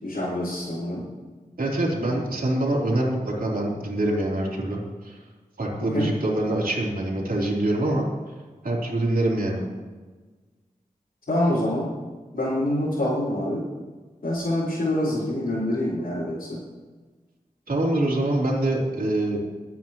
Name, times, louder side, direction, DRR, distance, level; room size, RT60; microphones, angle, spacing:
voice 1, 0.0-1.0 2.0-2.1 5.9-6.1 11.3-11.9 12.3-13.6 14.2-16.6, left 1 dB, 80° left, -11 dB, 4.5 m, -26 dB
voice 2, 1.6-5.2 5.6-8.1 8.6-9.6 17.7-19.4, right 1 dB, 75° right, -4 dB, 3.6 m, -25 dB
23.5 x 9.4 x 3.1 m, 1.4 s
wide cardioid pair, 50°, 15 cm